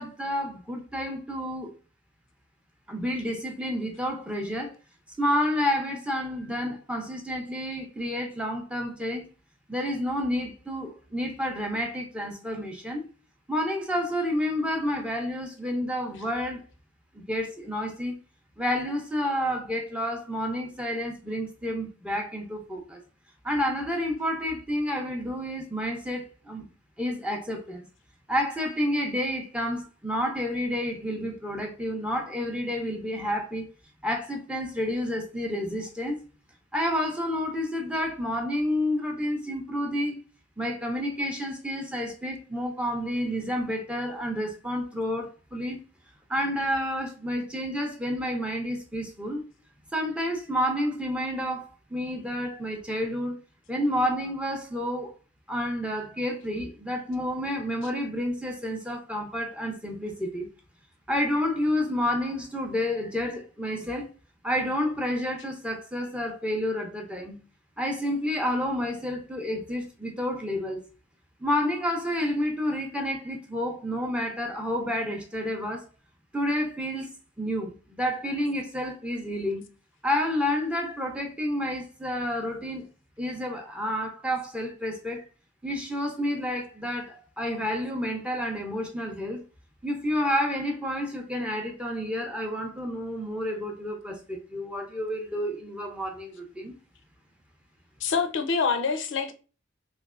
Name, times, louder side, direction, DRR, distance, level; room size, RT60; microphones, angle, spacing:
voice 1, 0.0-1.7 2.9-4.8 5.2-9.3 9.7-13.0 13.5-16.7 17.1-18.2 18.6-23.0 23.4-26.7 27.0-27.8 28.3-33.7 34.0-36.2 36.7-40.2 40.6-45.8 46.3-49.5 49.9-53.4 53.7-55.1 55.5-60.5 61.1-64.1 64.4-67.4 67.8-70.8 71.4-75.9 76.3-77.1 77.4-79.6 80.0-82.8 83.2-85.2 85.6-89.4 89.8-96.7, equal, 5° right, 0.6 m, -30 dB
voice 2, 98.0-99.3, left 5 dB, 65° left, 0.5 m, -26 dB
3.2 x 3.0 x 2.4 m
head